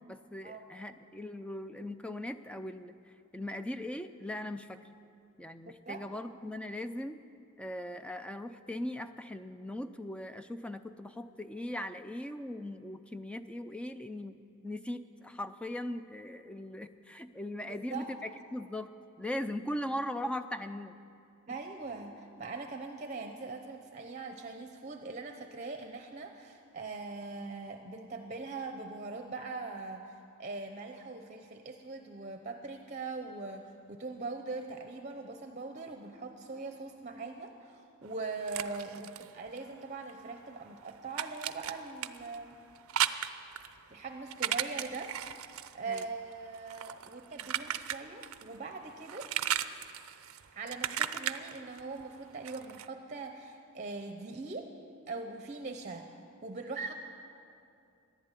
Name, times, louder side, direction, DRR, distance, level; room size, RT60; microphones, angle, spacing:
voice 1, 0.0-2.9 3.3-4.8 5.4-7.2 7.6-18.9 19.2-21.0 45.9-46.0, left 1 dB, 5° left, 10 dB, 0.4 m, -39 dB
voice 2, 17.7-18.1 21.5-42.6 43.9-49.3 50.5-54.7 55.1-56.1 56.4-56.9, right 3 dB, 30° right, 5 dB, 0.7 m, -41 dB
sound 1, 38.0-40.2 40.4-48.6 48.8-52.9, right 10 dB, 75° right, 0.5 m, -36 dB
14.5 x 11.0 x 9.0 m, 2.5 s
head